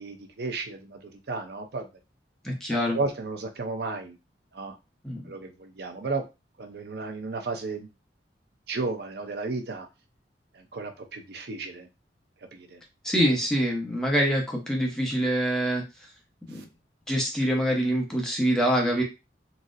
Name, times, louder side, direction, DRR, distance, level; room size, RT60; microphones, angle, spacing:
voice 1, 0.0-1.9 2.7-4.2 4.5-4.8 5.3-6.2 6.6-7.9 8.7-9.9 10.5-11.9 12.5-12.8 16.5-16.6, right 3 dB, 65° right, 5 dB, 0.6 m, -33 dB
voice 2, 2.4-3.0 5.0-5.2 13.0-15.8 16.5-16.6 17.1-19.0, equal, 5° left, -2 dB, 0.7 m, -25 dB
4.0 x 2.0 x 2.4 m, 0.26 s
head